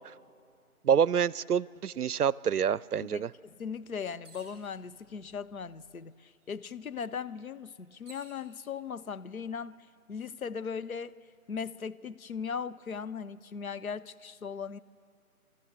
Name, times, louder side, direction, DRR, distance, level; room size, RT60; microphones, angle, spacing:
voice 1, 0.8-3.3, right 8 dB, 85° right, 22 dB, 0.5 m, -27 dB
voice 2, 3.1-9.8 10.1-11.2 11.5-14.8, left 6 dB, 70° left, 14 dB, 0.7 m, -38 dB
sound 1, 4.2-4.7 5.6-5.7 6.0-8.4 9.2-9.7, right 3 dB, 15° right, 4.3 m, -57 dB
24.0 x 14.0 x 8.0 m, 2.4 s
figure-of-eight pair, 160°, 44 cm